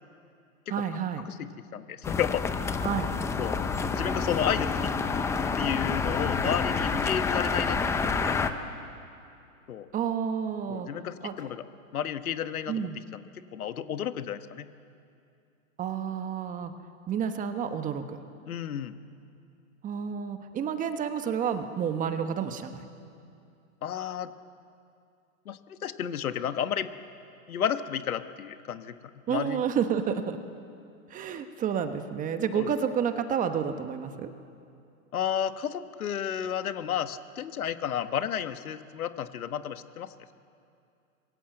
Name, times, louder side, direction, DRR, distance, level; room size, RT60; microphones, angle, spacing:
voice 1, 0.7-1.2 2.8-3.1 9.9-10.9 11.2-11.3 12.7-13.0 15.8-16.7 17.1-18.2 19.8-22.8 29.3-30.4 31.1-34.3, right 7 dB, 20° right, 8 dB, 1.2 m, -30 dB
voice 2, 1.4-2.4 3.4-3.6 3.9-4.9 5.6-8.1 9.7-9.9 10.7-11.6 11.9-13.2 13.5-14.7 18.5-19.0 23.8-24.3 25.4-26.9 27.5-29.0 29.3-29.6 32.5-32.7 35.1-40.1, left 9 dB, 85° left, 10 dB, 1.4 m, -32 dB
sound 1, 2.0-8.5, left 4 dB, 5° left, 0.6 m, -28 dB
26.0 x 22.0 x 7.8 m, 2.5 s
hypercardioid pair, 140°, 42 cm